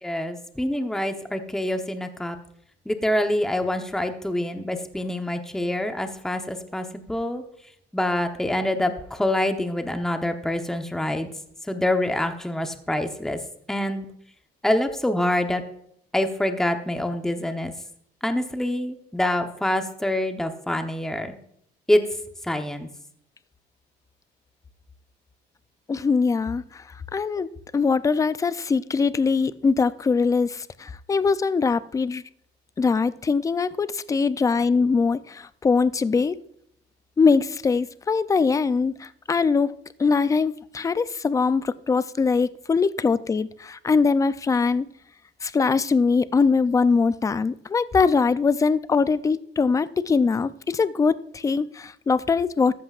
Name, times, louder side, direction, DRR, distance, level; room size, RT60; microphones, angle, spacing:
voice 1, 0.0-2.4 2.9-7.4 7.9-11.3 11.6-13.4 13.7-14.1 14.6-15.6 16.1-17.7 18.2-21.3 21.9-22.0 22.4-22.9, left 1 dB, 5° left, 6 dB, 0.9 m, -26 dB
voice 2, 25.9-26.8 27.1-32.2 32.8-36.4 37.2-39.7 40.0-44.9 45.4-52.7, left 4 dB, 20° left, 15 dB, 0.4 m, -22 dB
14.0 x 11.5 x 2.5 m, 0.71 s
cardioid pair, 140°, 18 cm